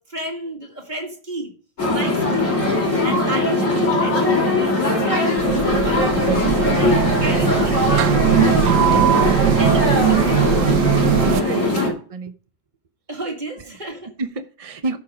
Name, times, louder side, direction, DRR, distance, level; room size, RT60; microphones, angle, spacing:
voice 1, 0.0-1.5 1.9-2.5 3.0-11.1 11.7-11.9 13.1-14.1, right 2 dB, 25° right, 1 dB, 2.2 m, -32 dB
sound 1, 1.8-11.9, left 2 dB, 45° left, 3.7 m, -20 dB
voice 2, 3.0-3.3 11.4-12.3 14.2-15.0, right 3 dB, 45° right, 9 dB, 0.4 m, -30 dB
sound 2, 5.4-11.4, right 13 dB, 75° right, 1.2 m, -20 dB
13.5 x 5.6 x 5.0 m, 0.42 s
omnidirectional pair, 1.8 m